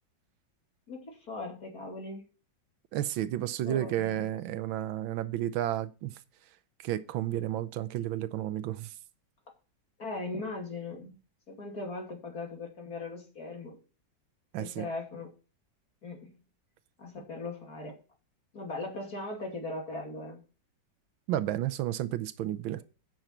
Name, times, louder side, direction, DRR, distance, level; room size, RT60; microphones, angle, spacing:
voice 1, 0.9-2.2 3.6-4.3 10.0-11.2 11.5-13.8 14.6-15.3 16.0-16.4 17.0-17.9 18.5-20.4, left 2 dB, 50° left, 3.0 m, -39 dB
voice 2, 2.9-6.1 6.8-8.9 14.5-14.9 21.3-22.8, right 12 dB, 85° right, 1.5 m, -32 dB
9.0 x 6.0 x 5.8 m
omnidirectional pair, 2.1 m